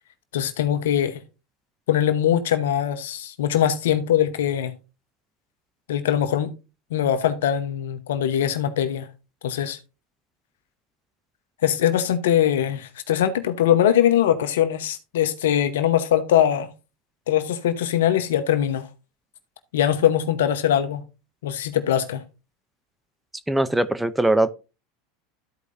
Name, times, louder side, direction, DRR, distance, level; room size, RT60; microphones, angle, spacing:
voice 1, 0.3-1.2 1.9-4.7 5.9-6.5 6.9-9.1 9.4-9.8 11.6-16.7 17.3-18.9 19.7-21.0 21.4-22.2, left 10 dB, 80° left, 1.0 m, -22 dB
voice 2, 23.5-24.5, right 2 dB, 5° right, 0.6 m, -21 dB
13.5 x 4.8 x 2.6 m
hypercardioid pair, 100°, 0 cm